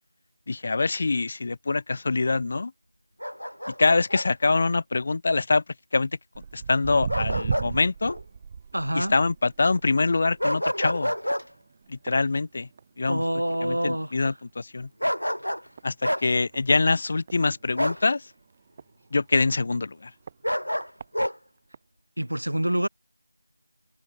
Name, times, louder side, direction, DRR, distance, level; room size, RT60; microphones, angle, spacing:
voice 1, 0.5-2.7 3.8-5.6 5.9-6.1 6.5-8.2 8.9-11.1 11.9-12.7 13.0-13.2 13.6-14.9 15.8-18.2 19.1-20.1, left 3 dB, 30° left, 0.9 m, -24 dB
Bark, 3.2-4.3 7.1-7.7 8.1-8.2 10.4-11.5 15.0-15.7 16.0-16.3 17.8-18.0 20.4-21.4, equal, 90° left, 1.5 m, -28 dB
Walk footsteps, 6.3-13.0 13.3-13.7 14.2-14.3 15.0-15.1 15.5-15.6 15.8-15.9 16.4-16.6 17.3-18.9 19.5-19.6 20.3-20.4 20.8-21.1 21.7-21.8, right 6 dB, 20° right, 6.9 m, -36 dB
voice 2, 8.7-9.1 13.1-14.1 22.2-22.9, right 1 dB, 75° right, 2.9 m, -26 dB
figure-of-eight pair, 170°, 0 cm